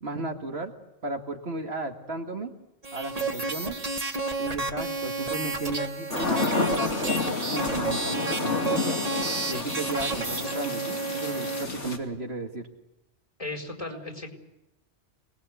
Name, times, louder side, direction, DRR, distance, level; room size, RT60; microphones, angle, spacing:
voice 1, 0.0-0.7 1.0-2.5 2.9-3.8 4.4-9.0 9.5-12.7, right 2 dB, 60° right, 3 dB, 2.2 m, -34 dB
sound 1, 2.8-11.7, right 3 dB, 30° right, 1.7 m, -31 dB
sound 2, 6.1-12.0, left 3 dB, 75° left, 2.8 m, -30 dB
voice 2, 13.4-14.3, left 2 dB, 30° left, 1 dB, 4.7 m, -35 dB
27.0 x 20.0 x 8.3 m, 0.92 s
omnidirectional pair, 1.2 m